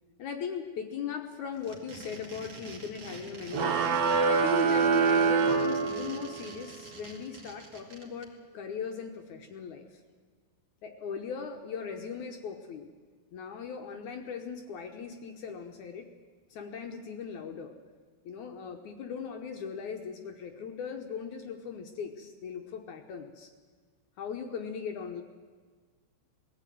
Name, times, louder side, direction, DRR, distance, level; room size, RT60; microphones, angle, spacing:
voice 1, 0.2-3.8 4.2-10.0 10.8-12.9 13.3-16.1 16.5-17.8 18.2-23.5 24.2-25.2, left 6 dB, 65° left, 5 dB, 2.1 m, -39 dB
sound 1, 1.5-8.2, right 3 dB, 40° right, 3.1 m, -47 dB
sound 2, 3.5-6.4, right 5 dB, 70° right, 1.4 m, -25 dB
20.0 x 14.5 x 9.2 m, 1.5 s
omnidirectional pair, 4.2 m